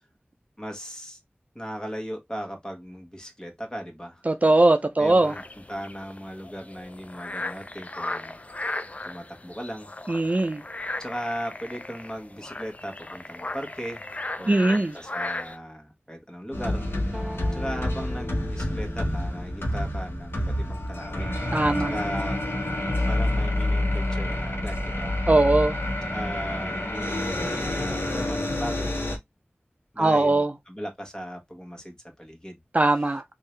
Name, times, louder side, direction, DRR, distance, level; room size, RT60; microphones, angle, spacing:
voice 1, 0.6-1.2 1.5-4.3 5.0-5.4 5.7-8.4 9.0-9.9 11.0-14.0 14.4-17.3 17.5-21.4 21.9-22.4 23.1-25.2 26.1-28.9 29.9-32.6, equal, 20° left, 1.4 m, -37 dB
voice 2, 4.3-5.3 10.1-10.6 14.5-14.9 21.5-21.9 25.3-25.8 30.0-30.5 32.7-33.2, right 2 dB, 40° right, 0.4 m, -20 dB
sound 1, 5.0-15.6, left 2 dB, 35° left, 0.4 m, -37 dB
sound 2, 16.5-29.2, left 1 dB, 75° left, 1.2 m, -28 dB
sound 3, 16.8-21.8, equal, 15° right, 1.1 m, -42 dB
3.7 x 2.7 x 3.2 m
wide cardioid pair, 45°, 4 cm